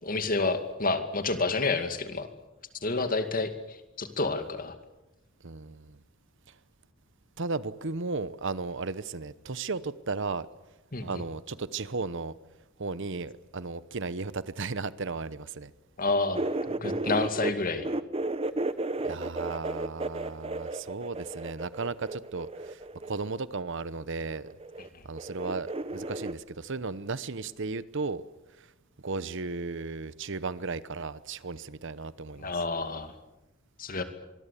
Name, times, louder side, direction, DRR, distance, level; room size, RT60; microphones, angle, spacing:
voice 1, 0.0-2.3 2.8-4.8 10.9-11.1 16.0-17.9 24.9-25.0 32.4-33.1 33.8-34.0, left 3 dB, 45° left, 2.4 m, -29 dB
voice 2, 5.4-6.0 6.5-6.6 7.4-10.5 11.0-12.3 12.8-15.7 19.0-24.5 25.0-28.3 28.6-28.7 29.0-32.5, right 3 dB, 65° right, 1.0 m, -35 dB
sound 1, 16.3-17.5 17.8-23.3 24.3-24.9 25.2-26.3, right 2 dB, 30° right, 1.0 m, -33 dB
25.0 x 22.0 x 8.5 m
head